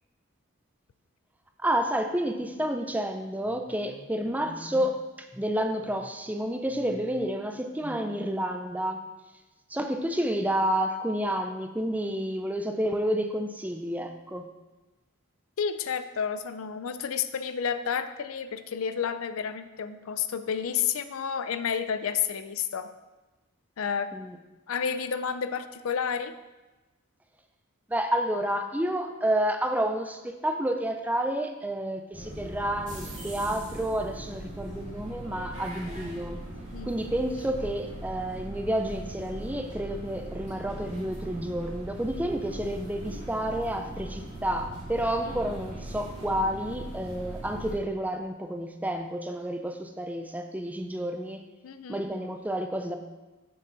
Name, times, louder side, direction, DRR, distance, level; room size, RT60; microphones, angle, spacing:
voice 1, 1.6-9.0 9.7-14.5 24.1-24.4 27.9-36.4 36.9-51.4 51.9-53.0, right 1 dB, 5° right, 5 dB, 0.5 m, -30 dB
voice 2, 15.6-22.9 23.8-24.1 24.7-26.3 36.7-36.9 51.6-52.0, left 7 dB, 80° left, 11 dB, 0.5 m, -30 dB
sound 1, 32.1-47.7, right 1 dB, 35° right, 2.3 m, -40 dB
7.1 x 6.8 x 3.9 m, 1.1 s
head